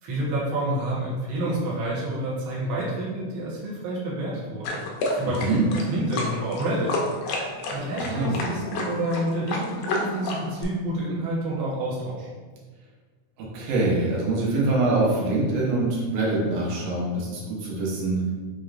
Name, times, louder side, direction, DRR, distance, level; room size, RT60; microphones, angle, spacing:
voice 1, 0.0-4.7 5.1-6.9 7.7-12.3, right 1 dB, 55° right, -7 dB, 1.5 m, -28 dB
sound 1, 4.6-10.6, left 2 dB, 90° left, 1.4 m, -30 dB
voice 2, 8.0-8.4 13.5-18.3, right 2 dB, 80° right, -4 dB, 2.6 m, -24 dB
6.6 x 3.1 x 2.5 m, 1.4 s
omnidirectional pair, 3.7 m